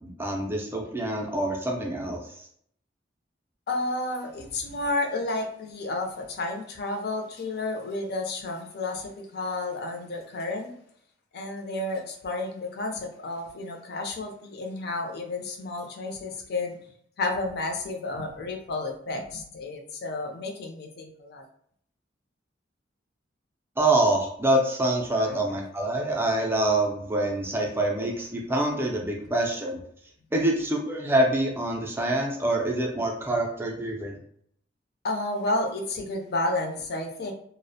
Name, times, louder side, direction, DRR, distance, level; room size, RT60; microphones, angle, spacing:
voice 1, 0.0-2.2 23.8-29.8 30.3-34.2, right 1 dB, 15° right, 0 dB, 0.3 m, -26 dB
voice 2, 3.7-10.7 11.3-16.8 17.2-21.4 25.3-25.4 35.0-37.3, left 2 dB, 60° left, 3 dB, 0.4 m, -31 dB
2.4 x 2.0 x 2.6 m, 0.66 s
head